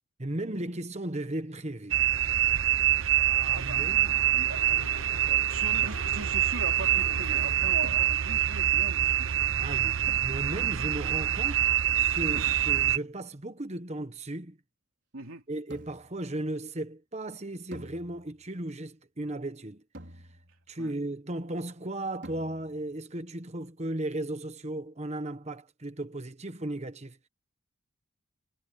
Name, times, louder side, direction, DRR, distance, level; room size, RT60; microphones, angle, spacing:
voice 1, 0.2-2.0 3.4-4.2 9.6-11.7 12.1-14.6 15.5-19.8 20.7-27.2, right 1 dB, 30° right, 1.2 m, -36 dB
sound 1, 1.9-13.0, right 12 dB, 70° right, 0.8 m, -26 dB
voice 2, 3.1-9.3 15.1-15.4 20.8-20.9, right 3 dB, 90° right, 3.1 m, -41 dB
Mechanisms, 3.3-8.5, left 3 dB, 90° left, 3.7 m, -47 dB
sound 2, 5.8-6.4 7.8-8.7 10.1-10.8 12.4-13.1 15.7-16.3 17.7-18.6 19.9-20.7 22.2-22.9, right 1 dB, 55° right, 5.1 m, -48 dB
head